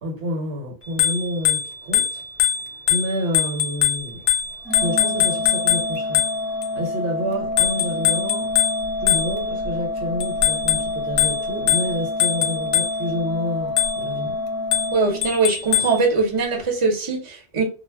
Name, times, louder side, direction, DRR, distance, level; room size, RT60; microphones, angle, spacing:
voice 1, 0.0-2.2 2.9-4.2 4.8-6.2 6.7-8.5 9.0-14.4, equal, 70° right, 1.1 m, -29 dB
Bicycle bell, 0.8-6.7 7.6-9.7 10.2-13.2 13.8-14.2 14.7-16.1, left 10 dB, 65° left, 0.7 m, -23 dB
Organ, 4.6-15.7, left 2 dB, ahead, 0.5 m, -28 dB
voice 2, 14.9-17.6, right 3 dB, 30° right, 0.7 m, -21 dB
2.2 x 2.0 x 3.3 m
omnidirectional pair, 1.2 m